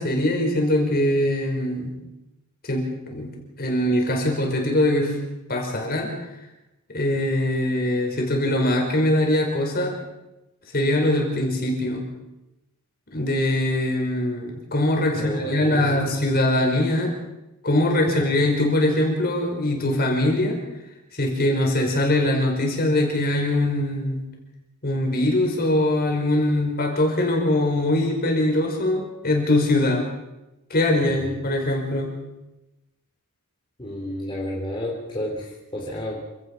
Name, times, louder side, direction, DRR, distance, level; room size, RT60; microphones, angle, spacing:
voice 1, 0.0-1.9 2.7-3.3 3.6-5.1 5.5-6.1 6.9-10.0 10.7-12.1 13.1-17.1 17.6-20.6 21.1-24.2 24.8-30.1 30.7-32.1, left 1 dB, 45° left, 1 dB, 5.4 m, -22 dB
voice 2, 15.1-16.3 18.1-18.4 31.1-31.4 33.8-36.2, equal, 20° left, -3 dB, 3.4 m, -31 dB
28.0 x 17.5 x 5.6 m, 0.97 s
head